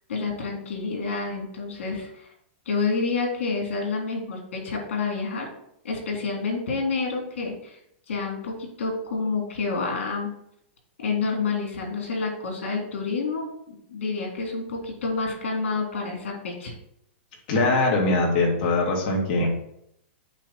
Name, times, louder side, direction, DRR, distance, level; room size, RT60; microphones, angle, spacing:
voice 1, 0.1-2.3 2.7-5.5 5.8-7.8 8.1-10.3 11.0-16.7, left 4 dB, 85° left, 0 dB, 3.3 m, -29 dB
voice 2, 17.5-19.5, left 2 dB, 40° left, -1 dB, 2.2 m, -22 dB
8.2 x 3.4 x 5.6 m, 0.73 s
supercardioid pair, 165°, 7 cm